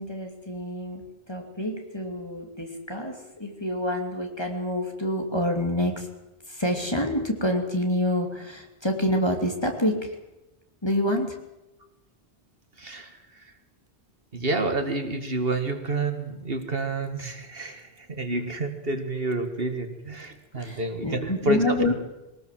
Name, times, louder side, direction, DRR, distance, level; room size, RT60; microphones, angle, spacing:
voice 1, 0.0-6.1 6.5-10.1 10.8-11.3 20.6-21.9, left 1 dB, 25° left, 3 dB, 3.0 m, -27 dB
voice 2, 12.8-13.5 14.3-21.9, right 2 dB, 65° right, 7 dB, 2.2 m, -29 dB
22.5 x 18.5 x 7.7 m, 0.97 s
omnidirectional pair, 1.0 m